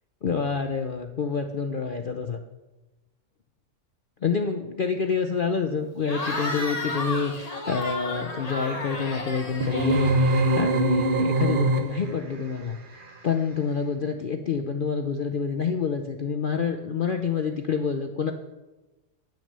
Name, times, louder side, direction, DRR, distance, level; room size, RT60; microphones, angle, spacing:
voice 1, 0.2-2.4 4.2-10.2 10.6-18.3, left 5 dB, 55° left, 6 dB, 0.6 m, -27 dB
Cheering / Crowd, 6.0-10.6, left 2 dB, 25° left, 1.3 m, -33 dB
sound 1, 9.6-12.2, right 1 dB, 40° right, 1.0 m, -23 dB
10.0 x 6.2 x 6.7 m, 1.1 s
omnidirectional pair, 1.6 m